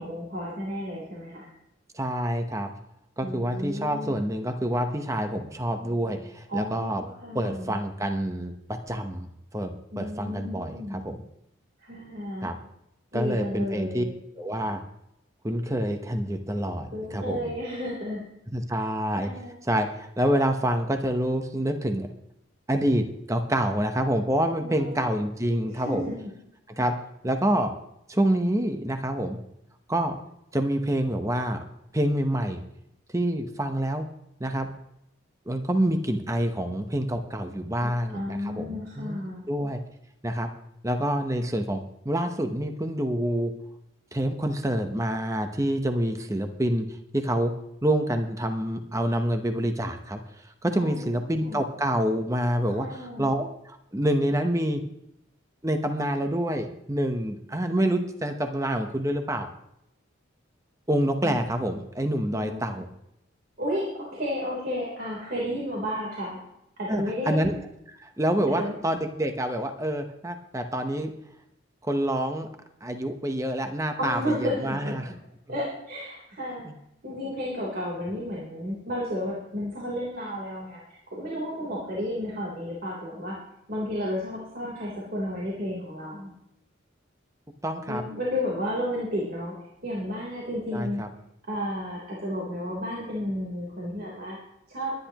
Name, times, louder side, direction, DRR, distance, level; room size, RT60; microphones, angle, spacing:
voice 1, 0.0-1.5 3.2-4.2 6.5-7.7 9.9-11.1 11.8-12.5 13.1-14.1 16.9-18.2 19.1-19.6 24.6-25.1 25.7-26.3 37.8-39.4 50.8-51.6 52.7-53.3 61.2-61.4 62.3-62.6 63.6-66.4 66.8-67.5 68.5-68.8 74.0-75.2 75.5-76.6 77.0-80.8 81.1-83.4 83.7-86.3 87.9-89.5 89.8-91.0 91.5-94.4 94.7-94.9, left 1 dB, 50° right, -5 dB, 3.6 m, -32 dB
voice 2, 1.9-2.7 3.2-7.0 7.3-11.2 12.4-12.6 13.1-14.0 14.4-14.8 15.4-17.5 18.5-19.3 19.6-22.1 22.7-26.0 26.8-26.9 27.2-27.7 28.1-29.4 29.9-30.2 30.5-31.6 31.9-32.6 33.1-34.1 34.4-34.7 35.5-39.8 40.2-40.5 40.8-43.5 44.1-46.9 47.1-47.5 47.8-54.8 55.6-59.5 60.9-62.9 66.9-67.5 68.0-71.1 71.8-72.5 72.8-75.1 87.6-88.0 90.7-91.1, right 1 dB, 15° right, 6 dB, 0.9 m, -27 dB
22.0 x 10.5 x 3.0 m, 0.81 s
head